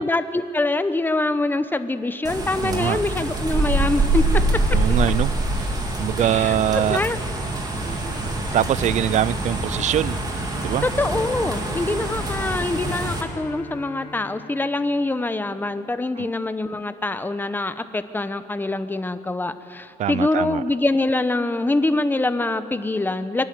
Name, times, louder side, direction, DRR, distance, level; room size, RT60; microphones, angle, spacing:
voice 1, 0.0-4.2 6.2-7.2 10.8-23.4, left 2 dB, 15° left, 11 dB, 0.9 m, -24 dB
sound 1, 2.2-13.2, right 2 dB, 25° right, 2.8 m, -25 dB
voice 2, 2.6-3.0 4.7-5.3 5.6-5.7 6.0-7.0 8.5-10.2 10.6-10.9 16.2-16.3 20.0-20.6, right 11 dB, 50° right, 22 dB, 0.4 m, -23 dB
Bowed string instrument, 9.8-15.8, left 5 dB, 80° left, 2.0 m, -43 dB
24.5 x 12.0 x 9.4 m, 2.4 s
cardioid pair, 130°, 15 cm